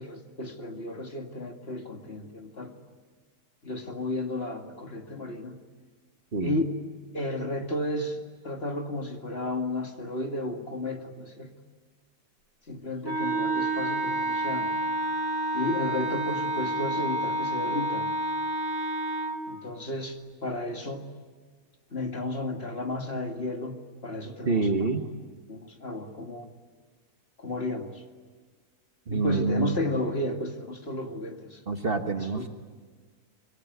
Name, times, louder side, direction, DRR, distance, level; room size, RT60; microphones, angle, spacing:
voice 1, 0.0-2.7 3.6-5.6 6.4-6.7 7.1-11.6 12.7-14.7 15.5-18.1 19.5-21.1 21.9-24.9 25.5-26.5 27.4-28.0 29.1-31.6 32.2-32.5, left 1 dB, 40° left, 3 dB, 2.4 m, -33 dB
Wind instrument woodwind instrument, 13.0-19.4, right 1 dB, 65° right, 2.6 m, -29 dB
voice 2, 24.4-25.0 29.1-29.8 31.7-32.5, right 4 dB, 40° right, 5 dB, 1.5 m, -27 dB
26.5 x 23.0 x 9.6 m, 1.5 s
omnidirectional pair, 1.6 m